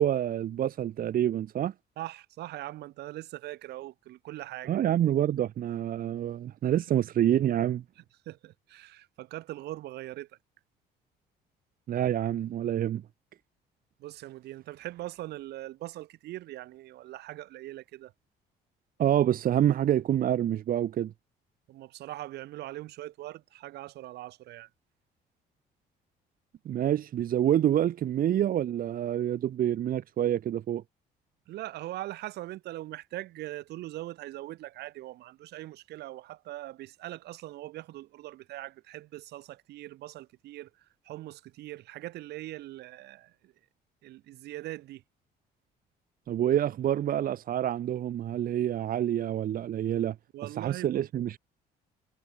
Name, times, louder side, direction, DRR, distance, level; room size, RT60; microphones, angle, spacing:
voice 1, 0.0-1.7 4.7-7.8 11.9-13.0 19.0-21.1 26.6-30.8 46.3-50.2 50.6-51.4, right 11 dB, 55° right, 2.5 m, -27 dB
voice 2, 2.0-4.8 8.2-10.3 14.0-18.1 21.7-24.7 31.5-43.5 44.0-45.0 50.3-51.0, right 16 dB, 75° right, 5.1 m, -41 dB
cardioid pair, 110°, 17 cm